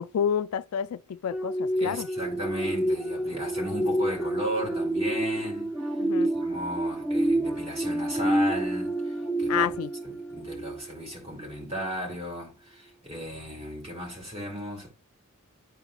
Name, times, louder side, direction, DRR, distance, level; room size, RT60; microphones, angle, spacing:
voice 1, 0.0-2.1 6.0-6.3 9.5-9.9, left 8 dB, 75° left, 0.3 m, -29 dB
sound 1, 1.3-11.2 11.6-11.8, right 1 dB, 5° right, 0.7 m, -28 dB
voice 2, 1.8-5.7 6.3-9.8 10.0-14.9, equal, 30° right, 2.7 m, -35 dB
11.5 x 4.1 x 2.3 m
head